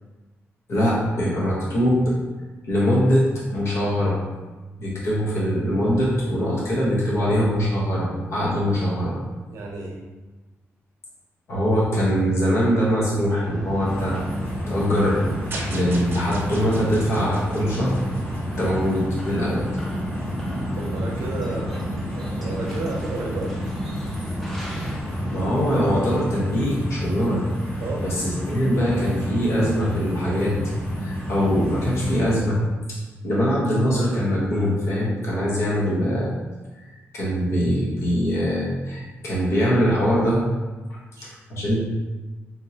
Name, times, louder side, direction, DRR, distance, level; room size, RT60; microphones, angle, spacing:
voice 1, 0.7-2.1 2.7-3.3 3.5-4.2 4.8-9.2 11.5-14.2 14.7-15.3 15.7-18.0 18.6-19.6 24.5-24.6 25.3-30.5 31.0-32.6 32.9-33.0 33.2-36.3 36.7-36.8 37.1-40.4 40.9-41.8, equal, 65° left, -5 dB, 1.1 m, -22 dB
voice 2, 9.5-10.0 20.7-23.5 27.8-28.2 41.2-41.3, right 2 dB, 80° right, -1 dB, 0.7 m, -32 dB
sound 1, 13.4-26.0, equal, 5° left, 0.5 m, -35 dB
sound 2, 13.8-32.4, equal, 30° left, 1.4 m, -30 dB
sound 3, 15.5-18.8, right 2 dB, 50° right, 0.6 m, -38 dB
3.6 x 2.8 x 2.8 m, 1.2 s
wide cardioid pair, 140°, 5 cm